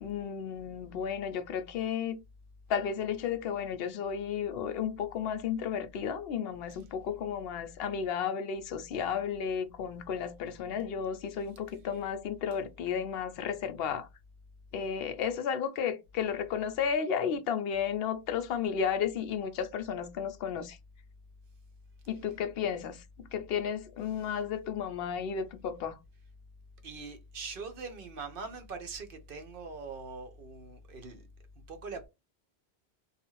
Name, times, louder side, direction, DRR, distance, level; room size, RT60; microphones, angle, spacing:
voice 1, 0.0-2.2 2.7-14.1 14.7-20.8 22.1-26.0, left 7 dB, 70° left, 0.8 m, -33 dB
voice 2, 26.8-31.2 31.7-32.1, right 4 dB, 60° right, 0.8 m, -42 dB
2.5 x 2.4 x 3.0 m
omnidirectional pair, 1.1 m